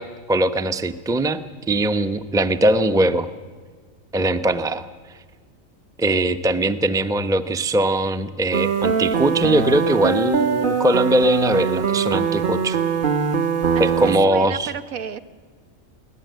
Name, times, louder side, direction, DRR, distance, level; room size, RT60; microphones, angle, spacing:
voice 1, 0.0-1.4 1.7-3.3 4.1-4.9 6.0-12.8 13.8-14.7, right 1 dB, 5° right, 10 dB, 0.7 m, -20 dB
sound 1, 8.5-14.2, right 6 dB, 40° right, 1.2 m, -22 dB
voice 2, 13.7-15.2, right 7 dB, 85° right, 10 dB, 1.5 m, -33 dB
23.5 x 17.0 x 9.3 m, 1.5 s
omnidirectional pair, 1.4 m